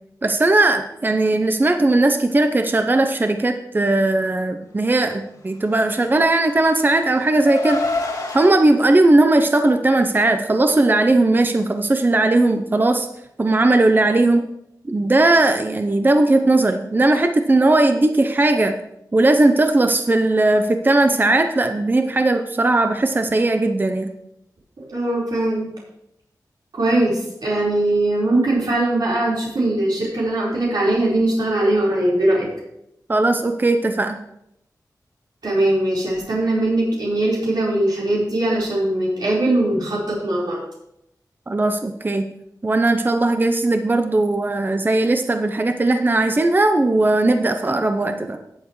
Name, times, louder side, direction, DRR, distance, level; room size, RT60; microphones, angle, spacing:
voice 1, 0.2-7.9 8.3-13.1 13.4-14.5 14.9-18.8 19.1-24.1 33.1-34.2 41.5-42.3 42.6-48.4, right 2 dB, 30° right, 6 dB, 0.7 m, -18 dB
Car, 6.0-8.5, left 3 dB, 60° left, 2.0 m, -28 dB
voice 2, 24.8-25.7 26.7-32.5 35.4-40.6, right 1 dB, 80° right, -6 dB, 4.4 m, -20 dB
18.0 x 7.0 x 3.2 m, 0.79 s
wide cardioid pair, 115°, 7 cm